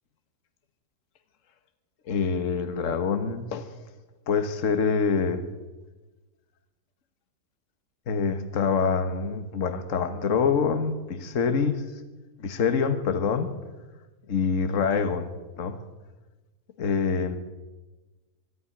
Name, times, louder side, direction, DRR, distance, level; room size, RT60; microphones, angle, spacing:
voice 1, 2.1-3.7 4.3-5.4 8.1-11.8 12.4-13.5 14.3-15.3 15.6-15.8 16.8-17.4, left 5 dB, 55° left, 8 dB, 1.6 m, -25 dB
24.0 x 11.0 x 10.0 m, 1.2 s
omnidirectional pair, 1.7 m